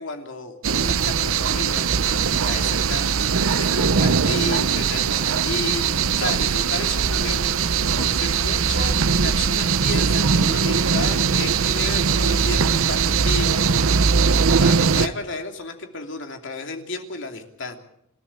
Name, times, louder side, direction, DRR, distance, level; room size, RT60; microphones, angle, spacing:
voice 1, 0.0-7.7 8.0-9.0 9.2-13.9 14.6-17.8, left 3 dB, 60° left, 4 dB, 2.9 m, -33 dB
sound 1, 0.6-15.1, right 6 dB, 75° right, 0.8 m, -20 dB
27.5 x 13.0 x 8.8 m, 0.76 s
head